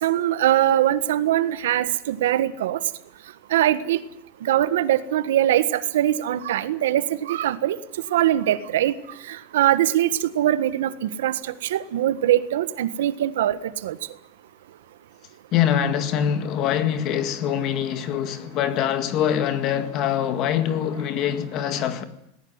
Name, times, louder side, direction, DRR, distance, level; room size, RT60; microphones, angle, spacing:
voice 1, 0.0-2.8 3.5-4.0 4.4-7.8 8.1-8.9 9.3-14.0, right 12 dB, 90° right, 1.4 m, -22 dB
voice 2, 15.5-22.0, left 9 dB, 30° left, 1.9 m, -24 dB
19.0 x 18.0 x 9.6 m
supercardioid pair, 180°, 0 cm